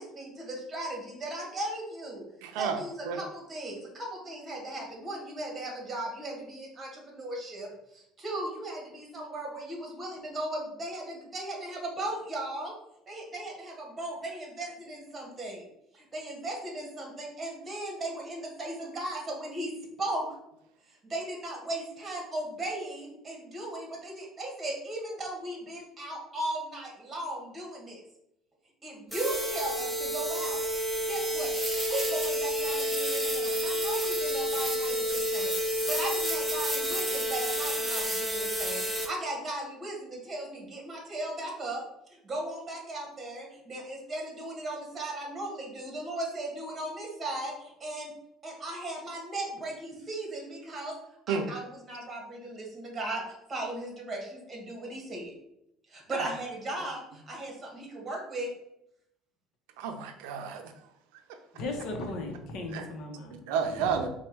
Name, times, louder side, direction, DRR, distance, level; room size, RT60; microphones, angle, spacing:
voice 1, 0.0-2.2 2.5-12.7 13.1-15.6 15.9-19.7 20.0-20.3 21.0-28.0 28.8-30.6 31.1-31.5 31.9-41.8 42.2-48.1 48.4-50.9 51.3-53.2 53.5-55.3 55.9-58.5, right 1 dB, 20° right, -1 dB, 1.4 m, -37 dB
voice 2, 2.4-2.8 3.1-3.2 51.3-51.5 56.1-56.2 59.8-60.6 62.7-62.9 63.5-64.1, right 6 dB, 85° right, 6 dB, 0.5 m, -30 dB
sound 1, 29.1-39.1, equal, 5° right, 0.7 m, -30 dB
voice 3, 61.5-63.4 63.8-64.0, left 2 dB, 55° left, 3 dB, 0.9 m, -37 dB
4.5 x 2.3 x 4.5 m, 0.79 s
cardioid pair, 145°, 0 cm